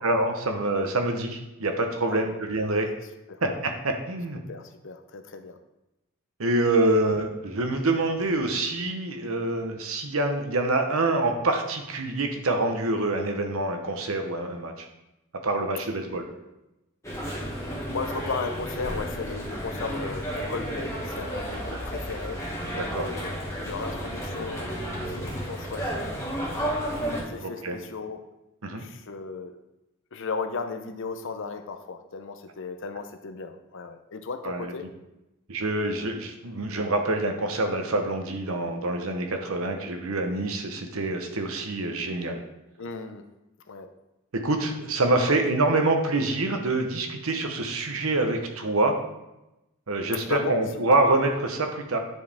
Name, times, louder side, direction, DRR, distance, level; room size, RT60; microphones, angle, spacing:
voice 1, 0.0-2.9 3.4-4.4 6.4-14.9 15.4-16.2 22.7-23.1 27.4-27.8 28.6-28.8 34.4-34.7 35.5-42.4 44.3-49.0 49.9-52.0, right 2 dB, 70° right, 5 dB, 1.0 m, -26 dB
voice 2, 2.0-2.4 3.3-3.4 4.3-5.6 17.9-22.4 22.9-26.2 27.1-28.2 28.7-29.6 30.1-34.9 42.8-43.3 43.7-43.9 45.3-45.4 50.3-50.8, left 4 dB, 60° left, 8 dB, 0.7 m, -35 dB
sound 1, 17.0-27.2, equal, 15° left, 1.6 m, -32 dB
10.0 x 4.7 x 3.5 m, 0.95 s
head